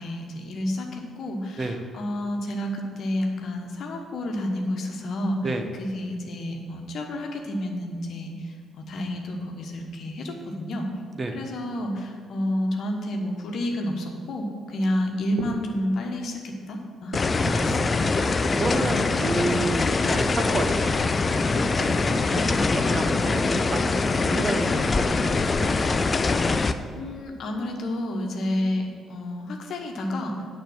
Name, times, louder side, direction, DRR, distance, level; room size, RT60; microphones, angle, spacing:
voice 1, 0.0-5.4 5.8-8.3 8.7-10.9 11.3-17.2 17.4-17.9 26.9-30.3, left 1 dB, 55° left, 2 dB, 1.3 m, -30 dB
sound 1, 15.3-15.6 17.1-17.8 19.0-19.4 20.0-20.2 22.0-22.5 23.4-23.5, right 4 dB, 75° right, 0.7 m, -39 dB
sound 2, 17.1-26.7, left 3 dB, 35° left, 0.5 m, -23 dB
voice 2, 17.4-21.0 21.5-25.7, right 2 dB, 35° right, 5 dB, 1.1 m, -31 dB
9.3 x 5.4 x 7.4 m, 2.2 s
figure-of-eight pair, 45°, 0 cm